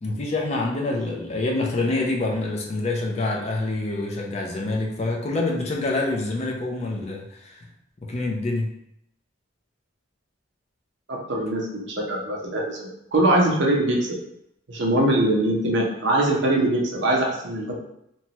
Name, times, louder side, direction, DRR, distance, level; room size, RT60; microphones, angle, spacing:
voice 1, 0.0-7.7 8.0-8.8, left 2 dB, 30° left, -1 dB, 0.4 m, -26 dB
voice 2, 11.1-14.2 14.7-17.8, right 1 dB, 60° right, -2 dB, 0.7 m, -22 dB
3.0 x 2.2 x 2.8 m, 0.77 s
head